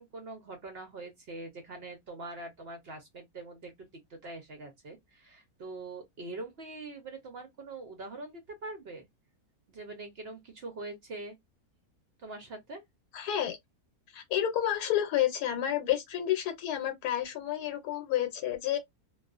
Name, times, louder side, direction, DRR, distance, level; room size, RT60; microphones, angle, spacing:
voice 1, 0.0-9.1 9.7-11.3 12.2-12.8, right 2 dB, 60° right, 0.7 m, -43 dB
voice 2, 13.1-13.6 14.1-18.8, left 11 dB, 85° left, 1.1 m, -30 dB
2.3 x 2.3 x 2.4 m
omnidirectional pair, 1.6 m